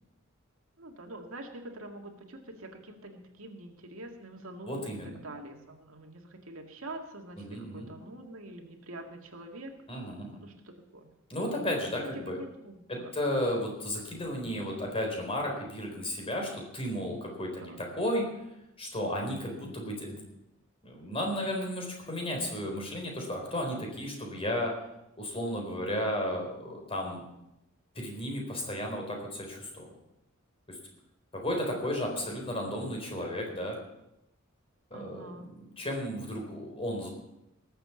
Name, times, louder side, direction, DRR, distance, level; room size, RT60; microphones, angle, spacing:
voice 1, 0.8-9.7 10.4-11.1 12.2-13.1 17.6-17.8 19.2-19.7 32.1-32.2 34.9-35.5, right 1 dB, 90° right, 2 dB, 2.2 m, -45 dB
voice 2, 4.7-5.2 7.4-7.9 9.9-10.4 11.3-12.4 12.9-18.3 18.8-20.2 20.8-24.7 25.2-27.2 27.9-29.9 30.7-30.8 31.3-33.8 34.9-37.1, equal, 30° left, 1 dB, 4.2 m, -34 dB
19.0 x 7.9 x 7.1 m, 0.86 s
head